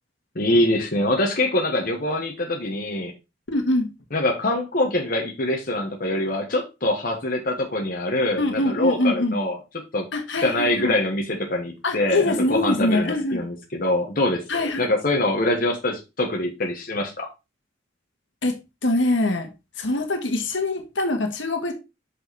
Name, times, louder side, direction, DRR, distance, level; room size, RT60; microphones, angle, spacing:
voice 1, 0.3-3.1 4.1-9.6 9.9-10.1 10.4-17.3, left 1 dB, 50° left, 1.3 m, -24 dB
voice 2, 3.5-3.9 8.4-9.4 10.1-11.0 11.8-13.4 14.5-14.9 18.4-19.5 19.8-21.7, left 2 dB, 75° left, 1.6 m, -23 dB
6.4 x 5.5 x 4.1 m
head